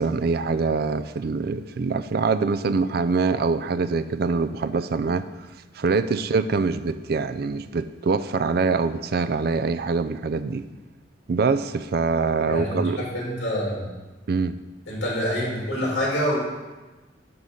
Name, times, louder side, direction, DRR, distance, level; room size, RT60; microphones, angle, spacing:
voice 1, 0.0-5.2 5.8-10.7 11.3-13.0 14.3-14.6, right 4 dB, 55° right, 12 dB, 0.4 m, -24 dB
voice 2, 12.5-13.9 14.9-16.4, equal, 70° left, -5 dB, 3.1 m, -26 dB
10.5 x 3.9 x 6.4 m, 1.2 s
head